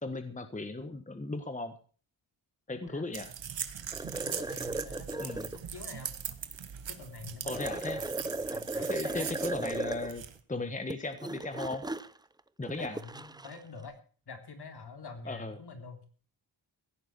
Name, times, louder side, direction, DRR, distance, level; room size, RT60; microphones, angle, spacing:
voice 1, 0.0-1.7 2.7-3.3 5.2-5.5 7.4-8.0 8.9-11.8 12.6-13.0 15.2-15.6, left 2 dB, 15° left, 8 dB, 1.5 m, -36 dB
voice 2, 2.7-3.0 4.2-6.2 6.9-9.3 12.8-14.0 14.3-16.0, left 4 dB, 55° left, 5 dB, 3.5 m, -47 dB
sound 1, 3.1-10.4, right 8 dB, 65° right, 1.6 m, -41 dB
sound 2, 3.9-5.6 7.5-10.1 10.7-13.6, right 2 dB, 10° right, 0.6 m, -36 dB
16.5 x 9.3 x 6.1 m, 0.40 s
wide cardioid pair, 100°, 48 cm